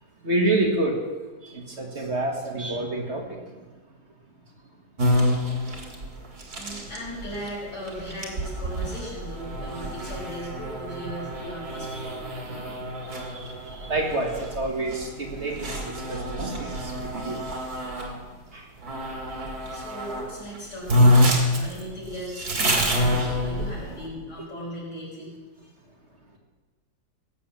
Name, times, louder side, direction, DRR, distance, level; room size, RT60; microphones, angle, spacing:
voice 1, 0.2-1.0 1.4-3.6 5.6-5.7 11.7-17.9 18.5-18.7 22.5-22.6 23.9-24.0, right 2 dB, 45° right, 1 dB, 2.2 m, -29 dB
sound 1, 5.0-18.2 18.8-20.3 20.5-20.6 20.9-24.0, equal, 70° right, 2.7 m, -27 dB
voice 2, 6.6-12.2 18.8-18.9 19.7-25.3 25.6-25.7, equal, 80° left, -4 dB, 5.3 m, -37 dB
17.5 x 7.5 x 7.2 m, 1.3 s
omnidirectional pair, 1.7 m